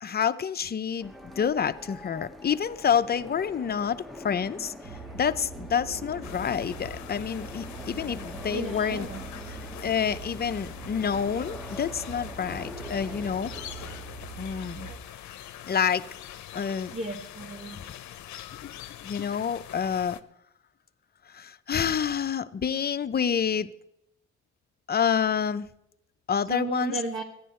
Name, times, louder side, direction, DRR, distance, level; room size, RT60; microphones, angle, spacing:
voice 1, 0.0-4.7 5.1-9.1 9.5-9.6 9.8-13.8 14.4-14.9 15.6-16.1 16.5-16.9 17.8-17.9 18.6-18.7 19.0-20.2 21.3-23.7 24.9-25.7 26.3-27.0, left 7 dB, 30° left, 12 dB, 0.6 m, -28 dB
sound 1, 1.0-14.7, left 1 dB, ahead, 0.8 m, -44 dB
sound 2, 4.8-15.0, right 4 dB, 80° right, 2.2 m, -43 dB
sound 3, 6.2-20.2, left 11 dB, 70° left, 0.7 m, -44 dB
voice 2, 8.5-9.2 16.9-17.8 26.5-27.2, right 2 dB, 45° right, 1 dB, 1.4 m, -34 dB
13.5 x 10.0 x 4.4 m, 0.78 s
cardioid pair, 90°, 30 cm